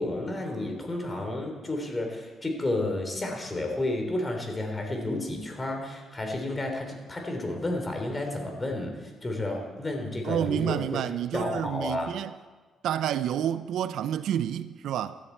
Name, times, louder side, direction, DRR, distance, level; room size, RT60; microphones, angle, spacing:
voice 1, 0.0-8.9 9.2-11.0 11.3-12.1, left 2 dB, 25° left, 3.5 m, -31 dB
voice 2, 10.2-12.3 12.8-15.2, right 10 dB, 80° right, 0.6 m, -29 dB
16.5 x 13.0 x 4.6 m
cardioid pair, 90°, 0 cm